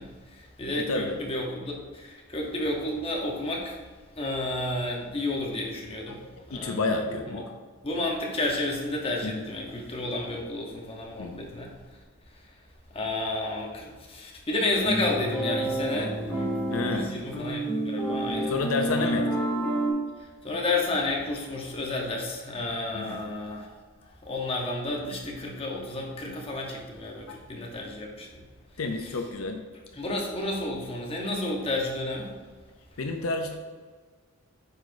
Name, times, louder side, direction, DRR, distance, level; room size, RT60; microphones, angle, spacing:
voice 1, 0.0-3.8 4.2-6.2 6.5-7.4 7.8-11.7 12.9-16.6 16.8-19.2 20.2-23.7 24.2-28.4 30.0-32.4, left 2 dB, 25° left, -1 dB, 0.9 m, -31 dB
voice 2, 0.8-1.2 6.1-7.4 9.2-9.5 11.2-11.5 16.7-17.1 18.4-19.3 22.9-23.2 27.3-27.4 28.8-29.6 33.0-33.5, left 3 dB, 70° left, 4 dB, 0.5 m, -30 dB
sound 1, 14.8-19.9, right 1 dB, 10° left, 1.3 m, -29 dB
8.1 x 4.8 x 2.7 m, 1.5 s
head